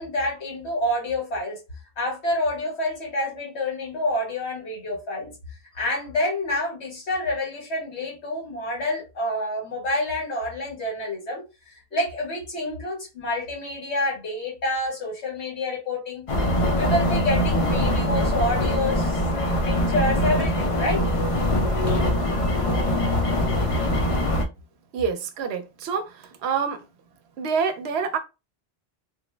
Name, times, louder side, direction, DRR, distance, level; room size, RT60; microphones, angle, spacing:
voice 1, 0.0-1.6 2.0-5.3 5.7-16.3 16.7-19.2 19.6-21.1, left 1 dB, 85° left, 1.8 m, -28 dB
sound 1, 16.3-24.4, left 1 dB, 45° left, 0.4 m, -23 dB
voice 2, 24.9-26.8 27.4-28.2, right 6 dB, 80° right, 0.9 m, -27 dB
3.1 x 2.0 x 3.2 m
omnidirectional pair, 1.1 m